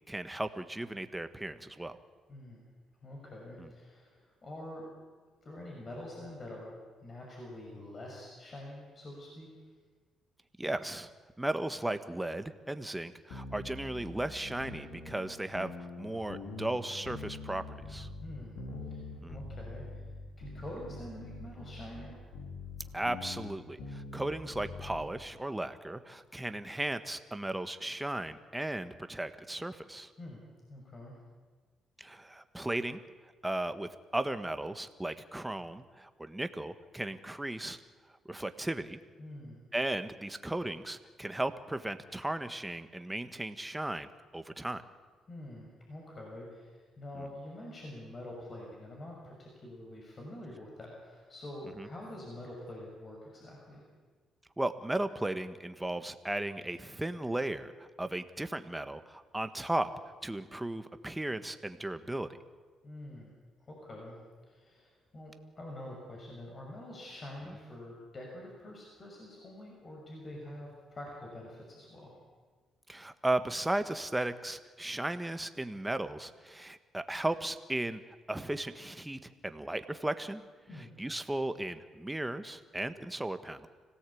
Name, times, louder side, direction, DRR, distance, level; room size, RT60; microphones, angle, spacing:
voice 1, 0.1-2.0 3.6-3.7 10.6-11.1 11.4-17.6 17.9-18.1 19.2-19.4 22.9-30.1 32.0-33.0 33.4-37.8 38.3-39.0 39.7-44.8 47.1-47.2 51.8-51.9 54.6-59.9 60.2-62.3 67.5-67.6 72.9-78.0 78.3-80.4 81.0-83.7, right 1 dB, 10° right, 10 dB, 1.4 m, -36 dB
voice 2, 2.3-2.6 3.0-4.9 5.4-6.7 7.0-9.5 18.2-18.6 18.8-20.1 20.4-22.2 30.2-30.4 30.7-31.1 39.2-39.6 45.3-53.8 62.8-63.3 63.7-64.2 64.4-72.1 80.7-80.9, left 1 dB, 40° left, -1 dB, 6.2 m, -46 dB
sound 1, 13.3-25.1, left 3 dB, 90° left, 4.6 m, -44 dB
25.5 x 17.5 x 8.6 m, 1.4 s
cardioid pair, 90°, 0 cm